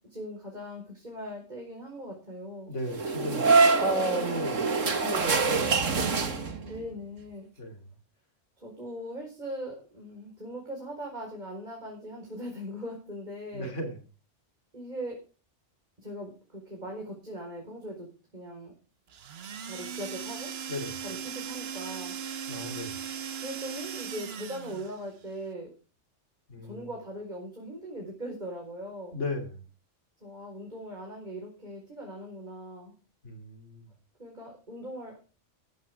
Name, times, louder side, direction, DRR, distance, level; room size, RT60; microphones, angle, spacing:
voice 1, 0.1-2.7 6.6-7.5 8.6-13.7 14.7-15.2 16.0-18.1 18.3-18.7 19.7-20.5 21.0-22.1 23.4-25.7 26.6-29.2 30.2-32.9 34.2-35.2, equal, 35° right, 5.1 m, -40 dB
voice 2, 2.7-6.0 7.6-7.8 13.5-14.0 20.7-21.0 22.5-23.0 26.5-26.9 29.1-29.6 33.2-33.9, equal, 75° left, 3.3 m, -35 dB
sound 1, 2.9-6.8, right 4 dB, 85° right, 2.1 m, -25 dB
sound 2, 19.1-25.0, right 7 dB, 55° right, 1.1 m, -38 dB
15.5 x 14.5 x 3.6 m
omnidirectional pair, 1.3 m